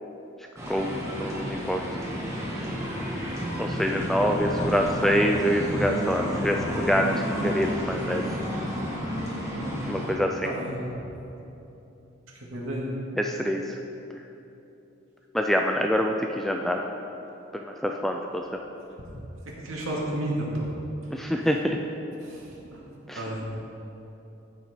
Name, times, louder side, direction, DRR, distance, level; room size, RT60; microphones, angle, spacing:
sound 1, 0.6-10.1, equal, 15° right, 1.7 m, -31 dB
voice 1, 0.7-1.8 3.6-8.2 9.9-10.5 13.2-13.7 15.3-16.8 17.8-18.4 21.1-21.8 23.1-23.2, equal, ahead, 2 dB, 0.3 m, -26 dB
voice 2, 10.4-10.9 12.5-12.9 19.0-19.1 19.6-20.5 22.2-22.5 23.1-23.4, right 1 dB, 85° right, -4 dB, 2.2 m, -32 dB
15.0 x 5.9 x 4.3 m, 2.9 s
head